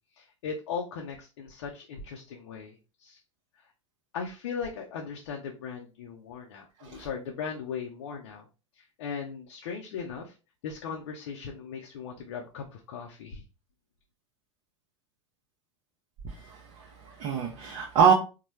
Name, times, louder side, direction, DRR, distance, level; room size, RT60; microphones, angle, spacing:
voice 1, 0.2-3.2 4.1-8.5 8.8-10.3 10.6-13.4, left 6 dB, 55° left, 1 dB, 0.6 m, -38 dB
voice 2, 16.2-18.1, right 7 dB, 40° right, 0 dB, 0.7 m, -25 dB
4.1 x 2.2 x 3.1 m, 0.32 s
figure-of-eight pair, 85°, 16 cm